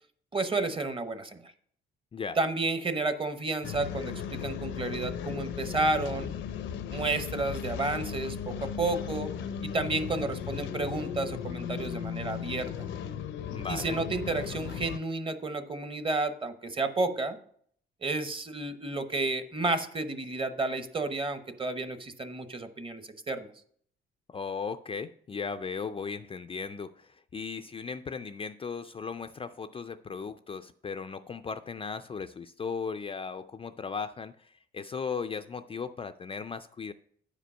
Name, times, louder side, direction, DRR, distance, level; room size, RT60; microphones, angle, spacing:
voice 1, 0.3-1.5 2.4-6.3 6.9-9.3 9.6-12.7 13.7-17.4 18.0-23.5, right 3 dB, 25° right, 10 dB, 0.9 m, -31 dB
sound 1, 3.6-15.0, left 8 dB, 75° left, 0.6 m, -36 dB
voice 2, 13.5-14.0 24.3-36.9, left 5 dB, 30° left, 10 dB, 0.3 m, -37 dB
9.5 x 5.1 x 5.5 m, 0.63 s
cardioid pair, 90°, 20 cm